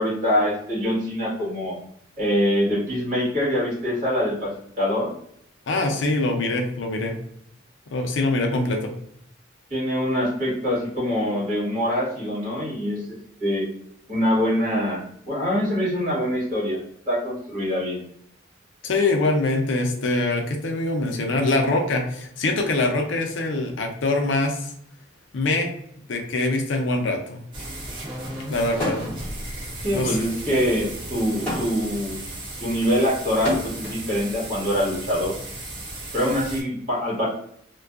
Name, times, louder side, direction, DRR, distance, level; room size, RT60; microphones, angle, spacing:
voice 1, 0.0-1.8 2.2-5.1 9.7-13.7 14.1-16.8 17.1-18.0 29.8-32.2 32.6-35.3 36.1-37.3, equal, 40° right, -7 dB, 1.4 m, -24 dB
voice 2, 5.7-7.1 7.9-8.9 18.8-24.7 25.3-25.7 26.1-27.4 28.5-29.0 29.9-30.2, left 2 dB, 70° left, 3 dB, 0.5 m, -23 dB
sound 1, 27.5-36.6, right 1 dB, 25° right, 0.5 m, -35 dB
sound 2, 28.8-29.3 29.6-34.0 34.9-36.5, left 1 dB, 10° left, 1.4 m, -32 dB
2.6 x 2.2 x 2.3 m, 0.68 s
head